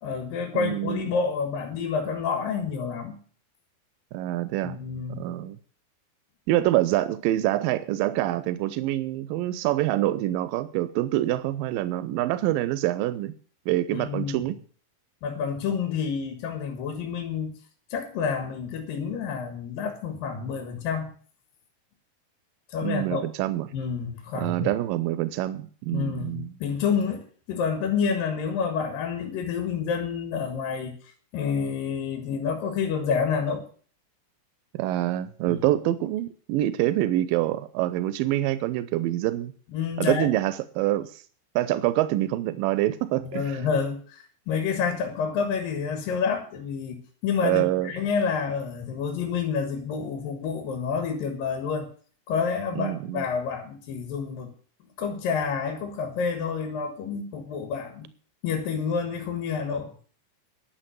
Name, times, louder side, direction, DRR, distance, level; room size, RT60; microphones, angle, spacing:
voice 1, 0.0-3.2 4.6-5.2 13.9-14.5 15.2-17.5 17.9-21.1 22.7-23.2 23.7-24.7 25.9-31.0 31.3-33.7 35.5-35.6 39.7-40.3 43.2-51.9 52.3-54.5 55.0-58.1 58.4-59.9, left 6 dB, 80° left, 3.4 m, -29 dB
voice 2, 0.5-1.1 4.1-4.8 5.2-5.6 6.5-13.3 13.7-14.6 22.8-23.7 24.4-26.5 34.7-39.5 40.0-41.2 41.6-43.5 47.4-47.9 52.7-53.2, right 14 dB, 85° right, 2.4 m, -26 dB
11.5 x 7.1 x 9.0 m
omnidirectional pair, 3.9 m